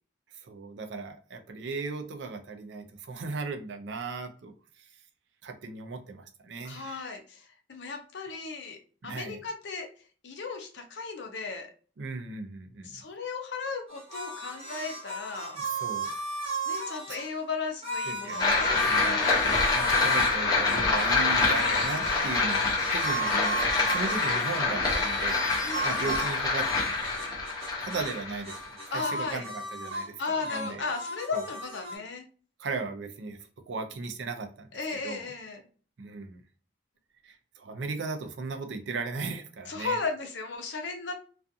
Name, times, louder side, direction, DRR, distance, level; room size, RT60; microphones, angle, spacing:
voice 1, 0.4-4.8 5.4-7.0 9.0-9.4 12.0-13.0 15.5-16.1 17.1-17.2 18.1-18.6 18.8-19.2 19.7-27.3 27.8-30.8 31.3-31.5 32.6-33.4 33.7-34.7 35.0-35.3 36.0-36.4 37.2-40.0, right 4 dB, 70° right, 6 dB, 0.4 m, -37 dB
voice 2, 6.6-8.8 9.0-9.9 10.2-11.7 12.8-15.6 16.7-19.6 21.2-22.0 24.0-24.5 25.6-26.1 28.9-29.4 30.2-32.2 34.7-35.6 39.7-41.1, left 4 dB, 70° left, 4 dB, 0.6 m, -36 dB
sound 1, 13.9-17.3 17.8-20.4 20.7-28.2 28.4-30.1 30.4-32.0, right 2 dB, 30° right, 0.7 m, -36 dB
sound 2, 18.4-29.3, left 3 dB, 20° left, 0.8 m, -26 dB
2.4 x 2.3 x 2.6 m, 0.39 s
head